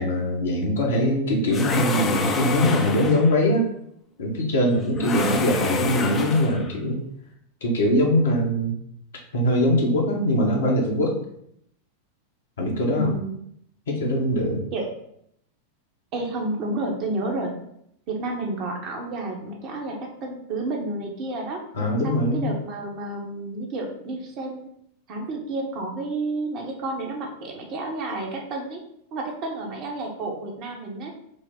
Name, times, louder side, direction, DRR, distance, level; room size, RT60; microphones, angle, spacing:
voice 1, 0.0-3.7 4.2-7.0 7.6-8.7 9.3-11.2 12.6-13.1 13.9-14.6 21.7-22.5, equal, 65° left, 0 dB, 0.9 m, -22 dB
sound 1, 1.5-3.4 4.9-6.7, left 4 dB, 25° left, 0.5 m, -27 dB
voice 2, 4.9-5.4 12.8-13.3 14.7-14.9 16.1-17.6 18.1-21.6 22.0-24.7 25.1-28.8 29.1-31.1, right 2 dB, 40° right, 1 dB, 0.8 m, -30 dB
5.1 x 2.0 x 3.7 m, 0.72 s
figure-of-eight pair, 90°, 0 cm